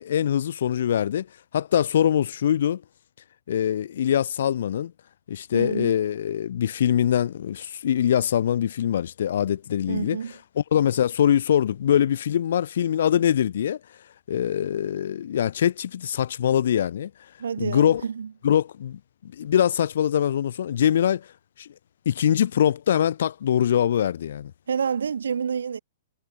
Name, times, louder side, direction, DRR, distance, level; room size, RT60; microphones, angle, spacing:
voice 1, 0.0-2.8 3.5-4.9 5.3-18.0 18.4-21.7 22.0-24.5, left 9 dB, 70° left, 1.4 m, -23 dB
voice 2, 5.5-5.9 9.9-10.3 17.4-18.3 24.7-25.8, right 6 dB, 85° right, 3.1 m, -28 dB
hypercardioid pair, 130°, 0 cm